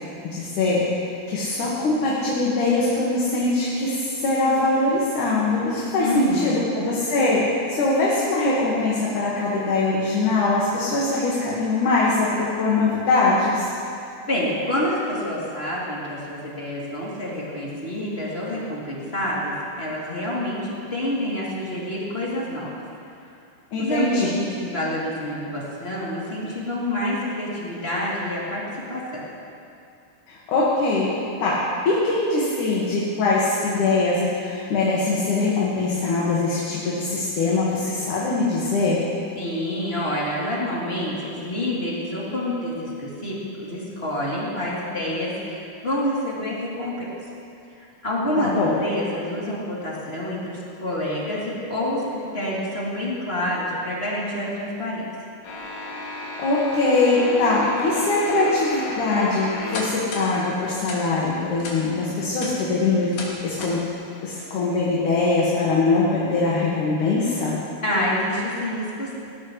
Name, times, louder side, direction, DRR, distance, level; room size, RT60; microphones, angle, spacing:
voice 1, 0.2-7.4 7.7-13.6 23.7-24.3 30.3-31.1 31.4-31.6 31.9-39.0 48.4-48.7 56.4-63.8 64.2-67.6, left 3 dB, 55° left, -6 dB, 3.0 m, -22 dB
voice 2, 6.0-6.6 14.3-22.7 23.2-23.3 23.8-29.2 39.3-47.1 47.8-55.0 67.8-69.1, left 1 dB, 15° left, -7 dB, 2.9 m, -27 dB
sound 1, 55.4-60.3 60.8-61.0 61.6-61.8 62.2-62.5 63.1-63.3 63.6-63.8, left 3 dB, 80° left, 4.4 m, -31 dB
19.5 x 17.5 x 3.3 m, 2.5 s
omnidirectional pair, 4.6 m